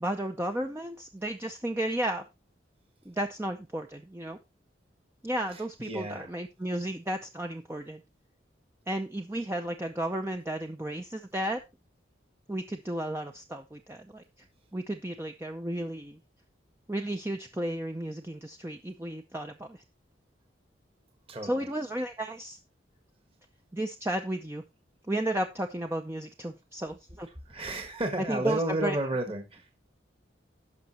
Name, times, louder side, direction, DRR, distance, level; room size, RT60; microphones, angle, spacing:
voice 1, 0.0-2.2 3.1-4.4 5.2-8.0 8.9-11.6 12.5-14.2 14.7-16.2 16.9-19.8 21.4-22.6 23.7-24.6 25.1-27.3 28.3-29.0, right 1 dB, 15° right, 4 dB, 0.5 m, -33 dB
voice 2, 5.5-6.3 21.3-21.7 27.4-29.7, right 1 dB, 30° right, 4 dB, 1.4 m, -32 dB
16.5 x 5.8 x 2.9 m, 0.24 s
head